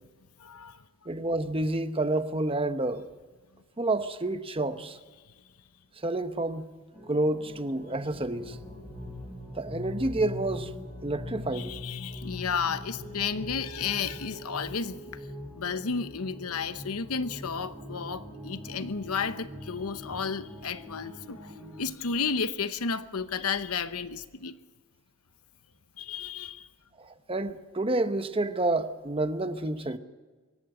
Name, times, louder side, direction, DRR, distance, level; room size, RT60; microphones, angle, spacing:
voice 1, 0.4-0.8 11.5-15.2 15.6-24.5 26.0-26.7, left 5 dB, 80° left, 0.9 m, -32 dB
voice 2, 1.1-3.1 3.8-5.0 6.0-6.7 7.1-8.6 9.5-10.7 11.0-11.7 27.0-30.0, right 2 dB, 25° right, 0.9 m, -29 dB
sound 1, 6.9-21.8, left 1 dB, ahead, 5.0 m, -42 dB
24.5 x 14.0 x 7.8 m
head